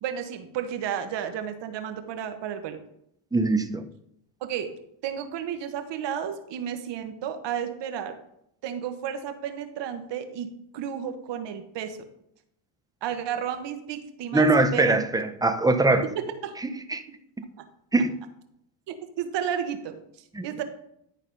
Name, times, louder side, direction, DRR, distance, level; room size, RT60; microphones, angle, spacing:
voice 1, 0.0-2.8 4.4-4.7 5.0-8.2 8.6-12.0 13.0-15.0 16.1-16.5 17.1-17.2 17.6-17.7 18.9-20.0 20.4-20.6, right 9 dB, 60° right, 8 dB, 1.3 m, -32 dB
voice 2, 3.3-3.9 14.3-16.0 16.6-17.0 17.9-18.1 20.3-20.4, right 2 dB, 10° right, 9 dB, 0.7 m, -22 dB
11.0 x 4.1 x 5.3 m, 0.76 s
supercardioid pair, 90°, 49 cm